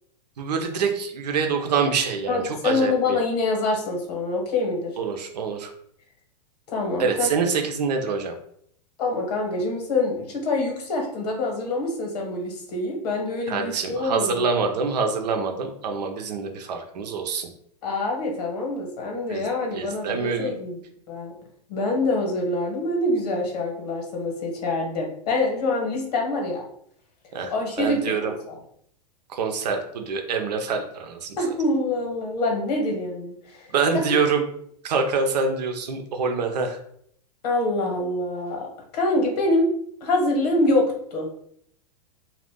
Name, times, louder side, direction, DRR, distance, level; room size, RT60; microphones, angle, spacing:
voice 1, 0.4-3.2 5.0-5.7 7.0-8.4 13.5-17.5 19.3-19.5 19.7-20.5 27.3-28.3 29.3-31.4 33.7-34.4 34.8-36.8, right 5 dB, 75° right, 4 dB, 0.7 m, -25 dB
voice 2, 2.3-5.0 6.7-7.3 9.0-14.5 17.8-20.8 21.1-21.3 21.7-26.6 27.5-28.3 31.4-33.7 37.4-39.7 40.0-40.8 41.1-41.3, left 2 dB, 70° left, 1 dB, 1.2 m, -25 dB
2.6 x 2.4 x 3.5 m, 0.67 s
hypercardioid pair, 120°, 21 cm